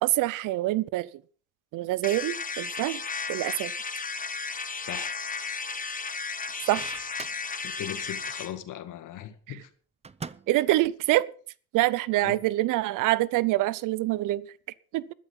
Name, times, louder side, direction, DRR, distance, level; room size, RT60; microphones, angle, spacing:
voice 1, 0.0-1.1 1.7-3.0 3.3-3.7 6.7-7.0 10.5-11.3 11.7-14.5 14.9-15.0, right 17 dB, 75° right, 0.7 m, -25 dB
sound 1, 2.0-8.5, left 4 dB, 25° left, 1.4 m, -34 dB
Microwave oven, 6.5-7.5 10.0-10.7, right 5 dB, 20° right, 0.7 m, -42 dB
voice 2, 7.6-9.7 12.2-12.4, left 11 dB, 70° left, 1.9 m, -38 dB
12.5 x 11.5 x 5.6 m
supercardioid pair, 85°, 32 cm